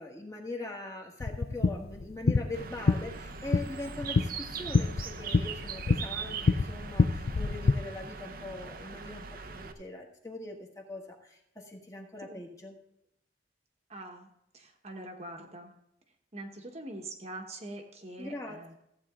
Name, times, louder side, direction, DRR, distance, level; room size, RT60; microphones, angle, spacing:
voice 1, 0.0-12.8 18.2-18.7, left 2 dB, 20° left, 0 dB, 1.7 m, -42 dB
sound 1, 1.2-7.7, left 3 dB, 60° left, 0.5 m, -28 dB
Bird, 2.5-9.7, right 6 dB, 50° right, 0.8 m, -41 dB
voice 2, 13.9-14.3 14.5-15.7 16.3-18.7, right 1 dB, 35° right, 3 dB, 1.2 m, -43 dB
15.0 x 8.4 x 3.7 m, 0.78 s
head